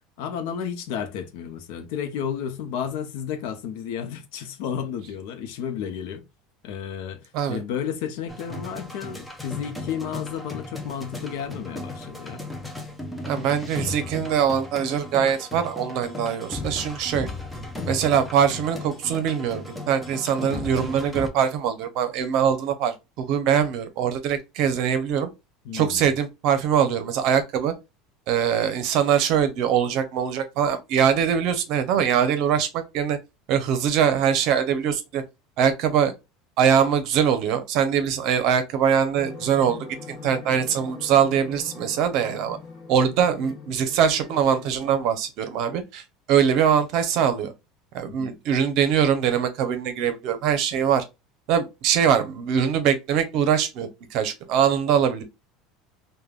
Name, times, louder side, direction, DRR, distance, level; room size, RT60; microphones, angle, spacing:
voice 1, 0.2-6.2 6.6-12.5 20.4-20.6 25.6-26.1 48.0-48.4, left 8 dB, 70° left, 0.6 m, -32 dB
sound 1, 8.3-21.3, left 2 dB, 5° left, 0.5 m, -36 dB
voice 2, 13.2-17.3 17.9-25.3 25.7-27.7 28.3-33.2 33.5-35.2 35.6-36.1 36.6-42.6 42.9-46.0 46.3-47.5 47.9-51.0 51.5-55.2, right 8 dB, 55° right, 0.7 m, -22 dB
sound 2, 39.2-45.0, left 4 dB, 20° left, 1.0 m, -42 dB
3.4 x 2.2 x 2.2 m
cardioid pair, 150°, 0 cm